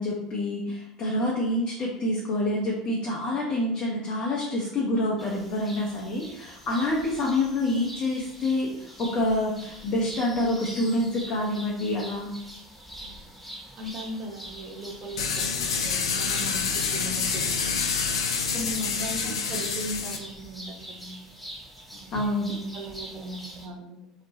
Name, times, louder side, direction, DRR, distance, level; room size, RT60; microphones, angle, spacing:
voice 1, 0.0-12.3 22.1-22.6, left 1 dB, 40° left, -4 dB, 0.7 m, -27 dB
sound 1, 5.2-23.7, equal, ahead, 0.9 m, -44 dB
voice 2, 13.8-18.2 18.5-21.2 21.9-22.1 22.7-24.1, right 1 dB, 45° right, 2 dB, 0.7 m, -38 dB
sound 2, 15.2-20.2, left 5 dB, 75° left, 0.3 m, -27 dB
2.8 x 2.1 x 3.1 m, 0.78 s
figure-of-eight pair, 70°, 3 cm